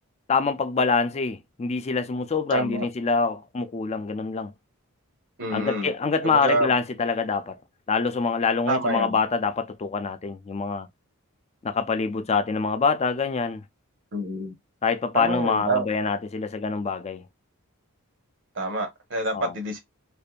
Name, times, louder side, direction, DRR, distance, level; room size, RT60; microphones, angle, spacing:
voice 1, 0.3-4.5 5.5-7.6 7.9-10.9 11.6-13.6 14.8-17.2 19.3-19.5, left 4 dB, 30° left, 0.4 m, -25 dB
voice 2, 2.5-2.9 5.4-5.9 6.2-6.7 8.7-9.2 14.1-14.5 15.1-15.9 18.6-19.8, right 2 dB, 60° right, 0.9 m, -27 dB
2.6 x 2.5 x 2.2 m
head